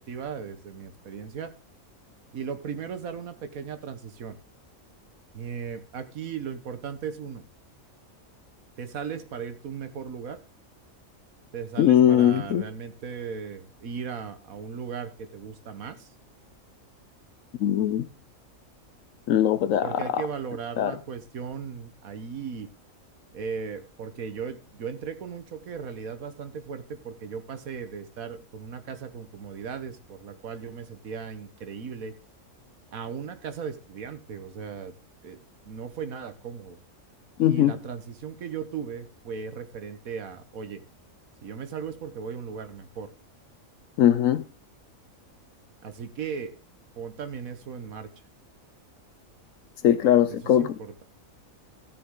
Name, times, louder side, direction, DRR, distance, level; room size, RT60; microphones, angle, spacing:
voice 1, 0.1-1.5 2.3-4.4 5.3-7.4 8.8-10.4 11.5-16.1 19.8-22.7 23.3-32.1 32.9-34.9 35.2-35.4 35.6-36.8 37.4-40.8 41.4-43.1 45.8-46.5 46.9-48.1 50.6-51.0, right 6 dB, 80° right, 1.6 m, -37 dB
voice 2, 11.8-12.6 17.6-18.1 19.3-20.2 20.8-20.9 37.4-37.8 44.0-44.4 49.8-50.8, left 10 dB, 75° left, 1.0 m, -20 dB
15.5 x 6.9 x 3.8 m
omnidirectional pair, 1.4 m